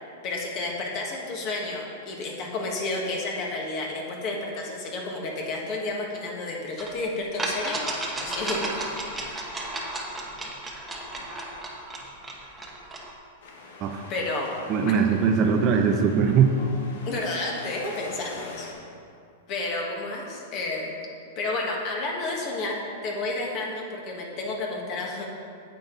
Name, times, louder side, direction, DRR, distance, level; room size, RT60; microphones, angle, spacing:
voice 1, 0.2-7.8 8.2-9.0 14.1-14.9 17.0-18.7 19.5-20.9 21.3-25.2, left 2 dB, 35° left, 0 dB, 1.6 m, -31 dB
sound 1, 6.8-6.9 7.4-13.1, right 2 dB, 10° right, 1.0 m, -33 dB
Wind, 13.4-18.7, left 3 dB, 75° left, 1.4 m, -44 dB
voice 2, 14.7-16.5, right 6 dB, 30° right, 4 dB, 0.6 m, -21 dB
9.2 x 7.8 x 4.0 m, 2.4 s
supercardioid pair, 155°, 0 cm